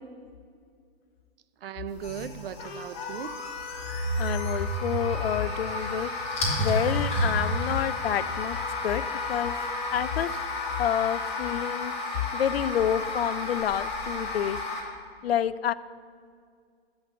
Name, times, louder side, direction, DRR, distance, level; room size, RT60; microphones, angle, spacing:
voice 1, 1.6-3.4, right 8 dB, 65° right, 14 dB, 0.6 m, -37 dB
sound 1, 1.9-14.8, left 1 dB, 20° left, 2.5 m, -32 dB
Trumpet, 2.6-12.1, left 6 dB, 40° left, 1.4 m, -40 dB
voice 2, 4.2-6.1 6.6-8.6 8.8-9.0 9.3-9.6 9.9-10.4 10.8-14.6 15.2-15.7, left 10 dB, 75° left, 17 dB, 0.5 m, -28 dB
13.0 x 4.6 x 7.7 m, 2.1 s
hypercardioid pair, 120°, 30 cm